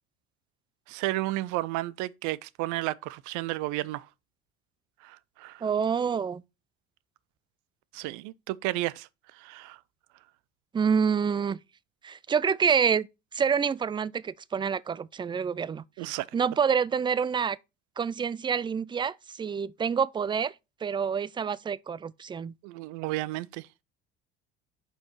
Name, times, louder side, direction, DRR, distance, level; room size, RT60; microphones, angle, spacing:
voice 1, 0.9-4.1 5.0-5.6 7.9-9.1 9.4-9.8 16.0-16.3 22.6-23.7, right 18 dB, 65° right, 0.6 m, -32 dB
voice 2, 5.6-6.4 10.7-11.6 12.0-13.1 13.3-17.6 18.0-20.5 20.8-22.5, right 6 dB, 15° right, 0.3 m, -27 dB
5.5 x 4.4 x 6.2 m
hypercardioid pair, 65°, 32 cm